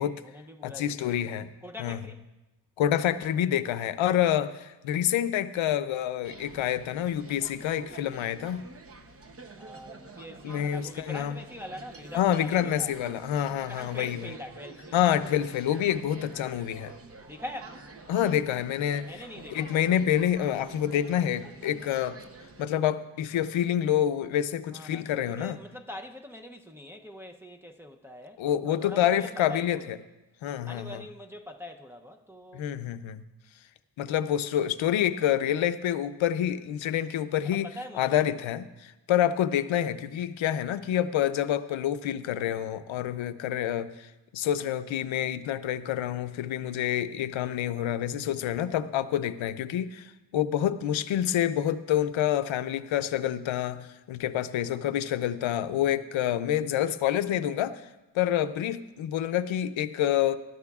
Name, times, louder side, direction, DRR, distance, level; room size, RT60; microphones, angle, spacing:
voice 1, 0.0-1.1 1.6-2.2 9.6-12.9 13.7-15.0 17.3-17.8 19.1-19.9 24.7-29.9 30.6-32.7 37.5-38.3, left 1 dB, 5° right, 0.5 m, -43 dB
voice 2, 0.6-1.5 1.8-2.0 2.8-8.6 10.4-11.4 12.1-14.3 14.9-16.9 18.1-19.1 19.5-22.2 22.6-25.6 28.4-29.8 30.4-31.0 32.5-33.2 34.0-37.7 37.9-57.8 58.1-60.4, left 10 dB, 85° left, 0.6 m, -27 dB
sound 1, 6.2-22.6, right 3 dB, 30° right, 0.8 m, -48 dB
20.0 x 12.0 x 2.4 m
wide cardioid pair, 150°, 45 cm